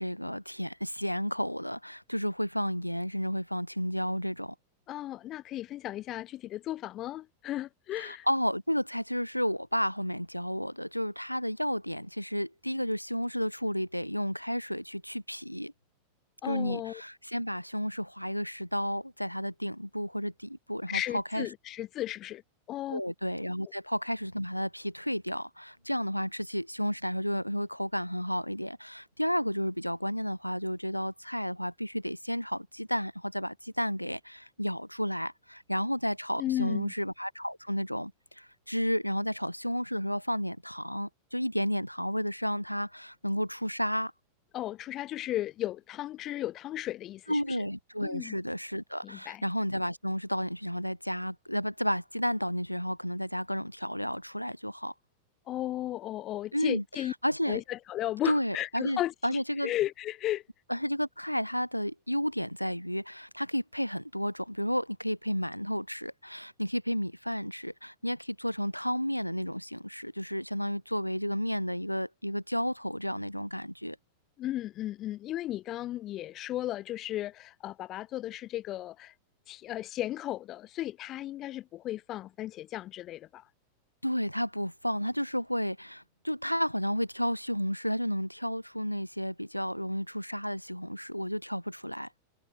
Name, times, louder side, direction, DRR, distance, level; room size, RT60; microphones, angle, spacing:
voice 1, 0.0-4.5 8.0-15.7 16.4-21.5 22.9-44.1 47.3-54.9 56.5-57.6 58.2-59.7 60.7-74.0 84.0-92.1, equal, 90° left, 0.6 m, -32 dB
voice 2, 4.9-8.3 16.4-17.0 20.9-22.4 22.7-23.0 36.4-36.9 44.5-47.4 48.0-48.4 49.0-49.4 55.5-57.1 57.5-60.4 74.4-79.1 79.5-83.4, left 14 dB, 35° left, 0.7 m, -35 dB
figure-of-eight pair, 90°, 0 cm